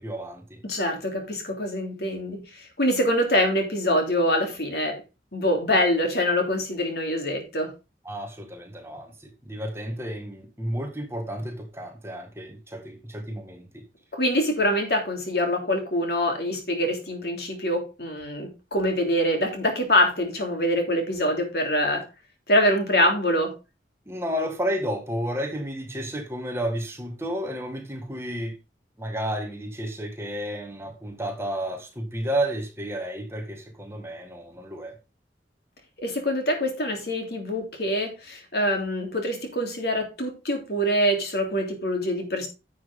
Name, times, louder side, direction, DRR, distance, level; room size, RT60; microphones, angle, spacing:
voice 1, 0.0-0.6 8.0-13.8 24.1-28.6 29.0-35.0, equal, 15° right, 1.7 m, -32 dB
voice 2, 0.6-5.0 5.3-7.7 14.1-22.1 22.5-23.5 36.0-42.5, equal, 60° left, 3.4 m, -25 dB
10.5 x 7.3 x 3.7 m
head